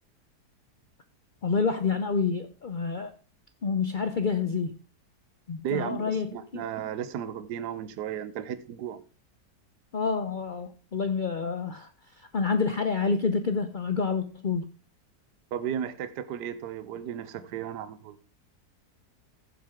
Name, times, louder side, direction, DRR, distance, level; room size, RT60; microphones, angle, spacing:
voice 1, 1.4-3.2 3.6-4.7 5.5-6.6 9.9-11.9 12.2-14.7, left 5 dB, 80° left, 9 dB, 0.4 m, -28 dB
voice 2, 5.6-9.0 15.5-18.2, right 9 dB, 80° right, 13 dB, 1.3 m, -34 dB
15.0 x 7.6 x 3.6 m, 0.36 s
omnidirectional pair, 1.8 m